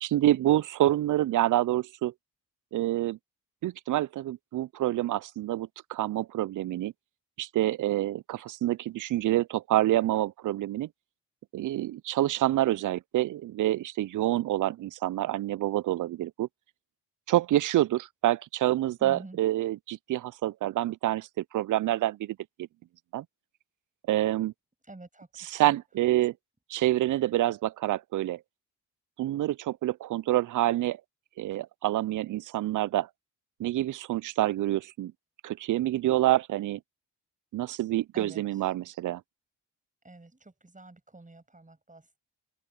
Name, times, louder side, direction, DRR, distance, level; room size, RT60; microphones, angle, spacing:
voice 1, 0.0-2.1 2.7-3.2 3.6-6.9 7.4-10.9 11.5-16.5 17.3-22.4 23.1-23.2 24.1-24.5 25.4-26.3 26.7-28.4 29.2-31.0 31.4-33.1 33.6-35.1 35.4-36.8 37.5-39.2, right 14 dB, 50° right, 0.4 m, -27 dB
voice 2, 19.0-19.4 24.8-25.8 38.1-38.7 40.0-42.2, right 2 dB, 20° right, 7.5 m, -48 dB
open air
supercardioid pair, 65°, 41 cm